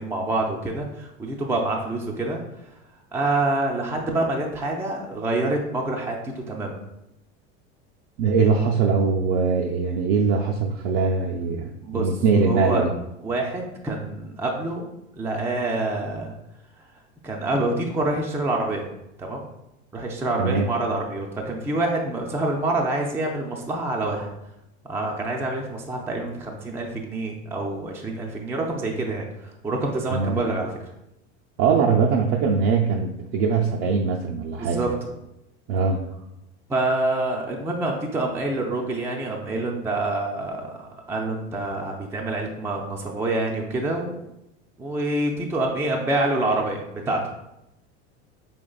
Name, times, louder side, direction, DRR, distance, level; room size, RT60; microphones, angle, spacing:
voice 1, 0.0-2.4 3.1-6.8 11.8-12.1 12.4-12.8 13.2-14.9 15.2-16.3 17.2-18.9 19.2-19.4 19.9-24.3 24.9-30.7 34.5-34.9 36.7-44.2 44.8-47.2, right 2 dB, 5° right, 0 dB, 0.4 m, -26 dB
voice 2, 8.2-12.9 20.4-20.7 30.1-30.4 31.6-34.8 35.7-36.0, right 5 dB, 70° right, 0 dB, 0.5 m, -22 dB
5.2 x 2.9 x 2.3 m, 0.86 s
hypercardioid pair, 100°, 35 cm